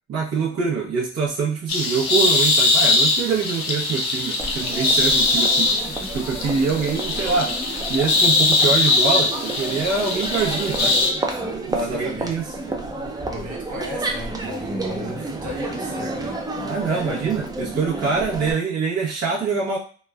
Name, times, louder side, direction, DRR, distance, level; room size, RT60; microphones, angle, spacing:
voice 1, 0.1-5.8 6.1-7.5 7.9-11.0 11.7-12.5 16.6-19.8, right 5 dB, 55° right, 0.8 m, -24 dB
sound 1, 1.7-11.1, left 2 dB, 60° left, 0.8 m, -21 dB
Crowd, 4.4-18.5, right 2 dB, 15° right, 0.4 m, -31 dB
voice 2, 11.8-12.3 13.3-16.4 16.8-17.4, left 1 dB, 75° right, 1.1 m, -34 dB
3.1 x 2.1 x 2.3 m
cardioid pair, 90°, 30 cm